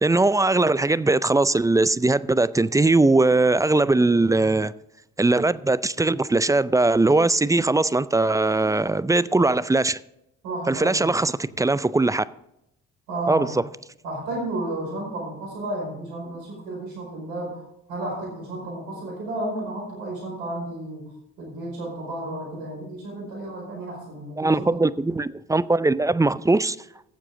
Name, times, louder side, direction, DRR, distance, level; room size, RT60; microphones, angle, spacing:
voice 1, 0.0-4.7 5.2-10.0 10.7-12.3 13.3-13.6 24.4-26.8, right 2 dB, 10° right, 0.4 m, -20 dB
voice 2, 10.4-11.1 13.1-13.5 14.0-17.6 17.9-21.0 21.4-24.9, right 1 dB, 85° right, 4.9 m, -32 dB
18.5 x 7.4 x 3.7 m
hypercardioid pair, 50°, 35 cm